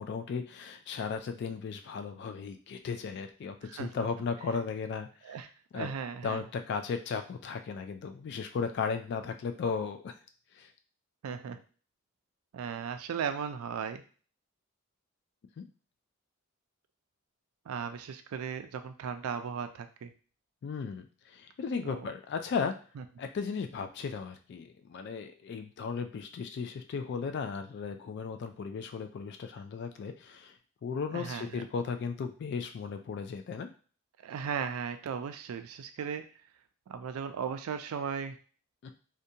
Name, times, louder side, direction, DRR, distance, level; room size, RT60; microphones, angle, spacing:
voice 1, 0.0-5.1 5.7-5.9 6.2-10.1 10.6-10.7 15.6-15.7 20.6-21.1 21.3-22.8 23.2-30.5 30.8-33.7 38.8-38.9, left 5 dB, 55° left, 7 dB, 0.3 m, -35 dB
voice 2, 3.6-4.1 5.2-5.5 5.7-6.4 11.2-11.6 12.5-14.0 17.7-20.1 21.8-22.1 23.0-23.1 31.1-31.7 34.2-36.2 36.9-38.4, right 7 dB, 80° right, 8 dB, 0.3 m, -36 dB
2.5 x 2.2 x 2.7 m, 0.39 s
head